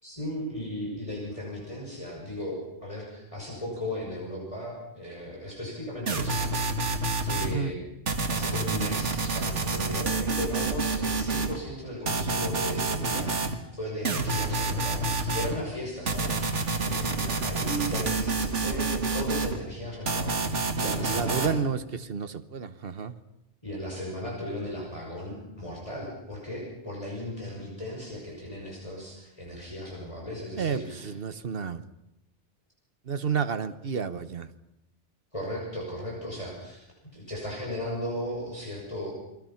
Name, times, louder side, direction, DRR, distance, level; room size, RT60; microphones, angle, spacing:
voice 1, 0.0-7.8 8.2-21.5 23.6-31.1 35.3-36.9 37.1-39.1, left 1 dB, 30° left, -3 dB, 6.3 m, -36 dB
sound 1, 6.1-7.5 8.1-11.6 12.1-13.5 14.0-15.5 16.1-19.6 20.1-21.5, right 3 dB, 80° right, 2.1 m, -28 dB
voice 2, 7.4-7.7 20.8-23.1 30.6-31.8 33.0-34.5, right 6 dB, 55° right, 12 dB, 1.3 m, -31 dB
29.0 x 22.5 x 5.8 m, 0.88 s
omnidirectional pair, 1.2 m